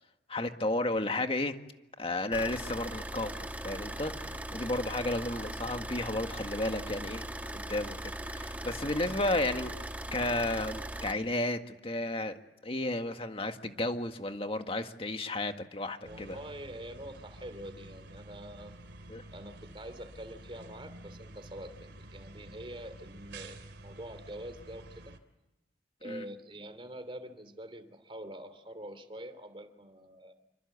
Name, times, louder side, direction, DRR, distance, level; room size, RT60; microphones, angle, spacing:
voice 1, 0.3-1.6 2.0-7.2 7.5-9.8 10.1-12.4 12.6-16.4 19.1-19.2 26.0-26.2, left 2 dB, 30° left, 6 dB, 1.8 m, -33 dB
Car / Idling, 2.3-11.1, right 1 dB, 10° right, 1.4 m, -39 dB
voice 2, 16.0-18.8 19.3-25.1 26.0-30.3, right 1 dB, 30° right, 9 dB, 3.0 m, -45 dB
sound 1, 16.0-25.2, right 1 dB, 75° right, 3.0 m, -50 dB
27.5 x 25.0 x 8.4 m, 0.97 s
head